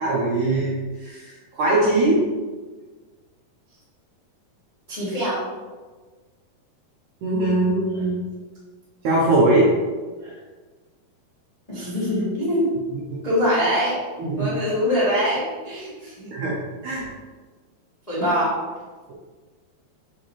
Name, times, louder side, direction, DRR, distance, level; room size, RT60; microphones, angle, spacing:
voice 1, 0.0-2.2 7.2-8.2 9.0-9.7 10.2-10.4 13.1-13.2 14.2-14.6 16.3-16.6 16.8-17.1, right 2 dB, 75° right, -4 dB, 1.9 m, -21 dB
voice 2, 4.9-5.4 11.7-12.7 13.2-13.9 14.4-16.3 16.9-17.0 18.1-18.5, equal, 65° left, -9 dB, 0.4 m, -23 dB
6.5 x 4.9 x 3.0 m, 1.4 s
omnidirectional pair, 4.4 m